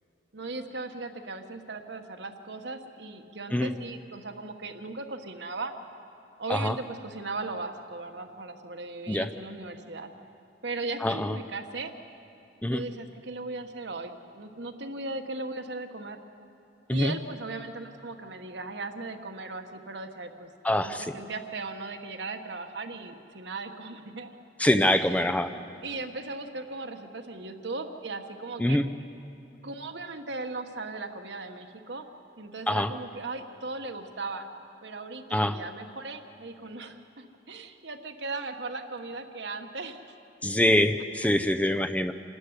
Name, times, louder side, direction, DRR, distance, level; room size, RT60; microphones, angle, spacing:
voice 1, 0.3-5.7 6.4-10.1 10.6-11.9 12.6-16.2 16.9-20.5 20.8-24.3 25.0-25.2 25.5-28.8 29.6-32.1 32.4-34.5 34.8-40.0, right 3 dB, 65° right, 6 dB, 1.4 m, -37 dB
voice 2, 11.0-11.4 12.6-12.8 16.9-17.1 20.6-21.1 24.6-25.5 28.6-28.9 32.7-32.9 35.3-35.6 40.4-42.1, left 1 dB, 10° left, 10 dB, 0.5 m, -24 dB
27.5 x 13.0 x 9.6 m, 2.7 s
head